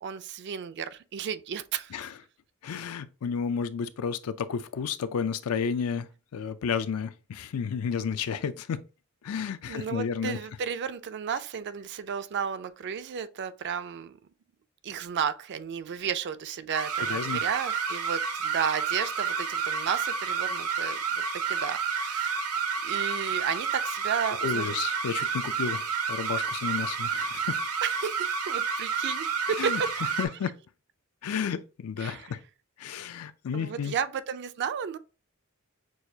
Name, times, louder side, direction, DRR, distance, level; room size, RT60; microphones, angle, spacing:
voice 1, 0.0-2.1 9.7-14.2 14.8-22.4 22.8-24.8 27.8-30.4 32.0-32.4 33.5-35.0, right 7 dB, 50° right, 0.4 m, -33 dB
voice 2, 2.6-6.1 6.3-8.8 9.2-10.4 17.1-17.4 24.4-25.8 26.1-27.6 29.6-29.8 30.2-30.5 31.2-32.4 32.8-34.0, left 6 dB, 75° left, 0.4 m, -31 dB
sound 1, 16.7-30.3, right 6 dB, 80° right, 0.7 m, -30 dB
6.2 x 2.3 x 2.7 m
head